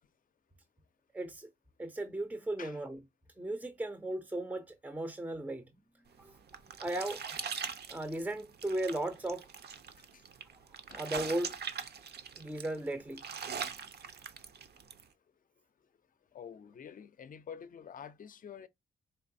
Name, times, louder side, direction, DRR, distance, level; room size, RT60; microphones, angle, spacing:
voice 1, 1.1-1.5 1.8-3.0 3.4-5.6 6.2-6.4 6.8-7.6 7.9-9.5 10.9-11.6 12.4-13.2, right 1 dB, 10° right, 0.5 m, -36 dB
sound 1, 6.1-15.0, right 7 dB, 60° right, 0.6 m, -42 dB
voice 2, 16.3-18.7, left 7 dB, 50° left, 0.5 m, -48 dB
4.5 x 3.1 x 2.6 m
wide cardioid pair, 145°, 19 cm